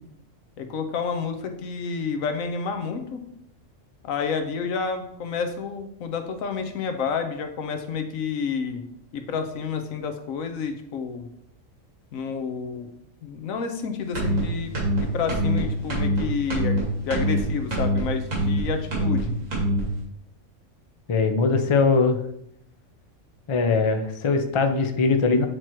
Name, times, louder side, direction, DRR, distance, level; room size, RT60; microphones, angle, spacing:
voice 1, 0.6-3.2 4.0-8.8 9.1-11.2 12.1-12.9 13.2-14.7 15.0-19.4, left 5 dB, 90° left, 6 dB, 1.2 m, -29 dB
sound 1, 14.1-14.4 14.7-15.0 15.3-15.6 15.9-16.2 16.5-16.8 17.1-17.4 17.7-18.0 18.3-18.6 18.9-19.2 19.5-19.8, equal, 75° right, 2.6 m, -23 dB
voice 2, 21.1-22.2 23.5-25.5, left 4 dB, 50° left, 6 dB, 0.3 m, -21 dB
8.2 x 3.0 x 4.4 m, 0.76 s
omnidirectional pair, 1.4 m